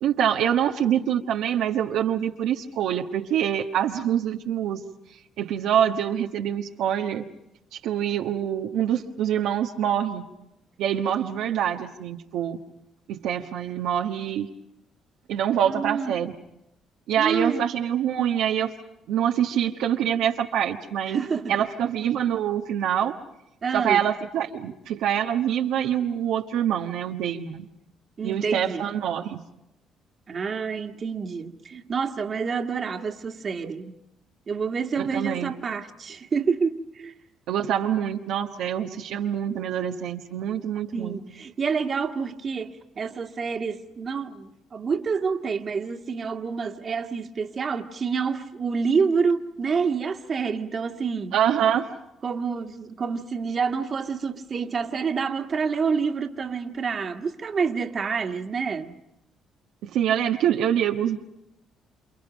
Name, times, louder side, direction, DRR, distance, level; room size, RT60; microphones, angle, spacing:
voice 1, 0.0-4.8 5.4-7.3 7.7-10.2 10.8-12.6 13.1-14.5 15.3-16.3 17.1-18.7 19.1-21.2 21.5-23.1 23.7-27.7 28.2-29.4 35.0-35.5 37.5-41.2 51.3-51.9 59.8-61.2, right 9 dB, 80° right, 1.3 m, -25 dB
voice 2, 15.7-16.1 17.2-17.7 21.1-21.6 23.6-24.0 28.2-28.8 30.3-34.0 34.5-37.1 40.9-51.4 52.2-59.0, right 5 dB, 45° right, 1.9 m, -28 dB
29.0 x 27.5 x 5.2 m
supercardioid pair, 65°, 0 cm